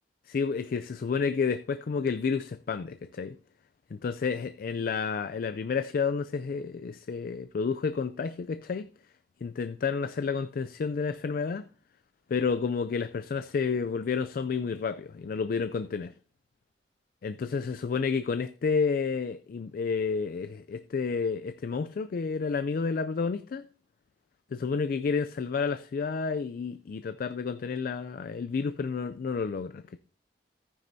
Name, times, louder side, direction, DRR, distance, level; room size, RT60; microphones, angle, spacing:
voice 1, 0.3-3.4 3.9-8.9 9.4-11.7 12.3-16.1 17.2-23.7 24.5-30.0, left 5 dB, 55° left, 0.3 m, -30 dB
14.0 x 9.5 x 2.6 m
head